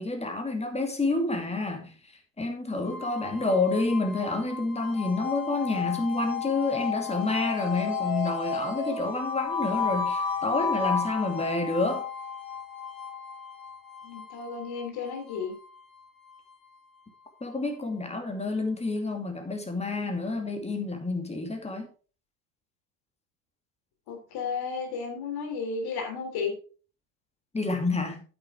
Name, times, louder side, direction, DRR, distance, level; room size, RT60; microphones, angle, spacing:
voice 1, 0.0-1.9 2.4-12.1 17.4-21.9 27.5-28.2, left 3 dB, 10° left, 2.4 m, -29 dB
sound 1, 2.8-17.8, left 6 dB, 75° left, 4.7 m, -34 dB
voice 2, 14.0-15.5 24.1-26.5, left 5 dB, 50° left, 3.1 m, -33 dB
9.1 x 8.6 x 3.6 m
figure-of-eight pair, 70°, 50 cm